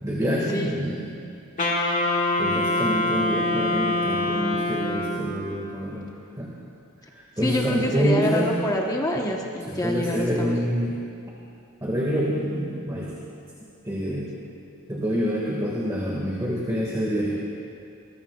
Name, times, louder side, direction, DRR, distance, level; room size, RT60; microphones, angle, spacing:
voice 1, 0.0-1.1 2.4-6.1 6.4-6.5 7.4-8.5 9.7-11.0 11.8-13.1 13.8-14.3 14.9-17.4, equal, 15° right, -5 dB, 1.9 m, -26 dB
Wind instrument woodwind instrument, 1.6-5.4, left 1 dB, 40° left, 1.7 m, -24 dB
voice 2, 7.4-10.5, equal, 15° left, -1 dB, 1.1 m, -26 dB
23.0 x 21.0 x 2.4 m, 2.5 s
head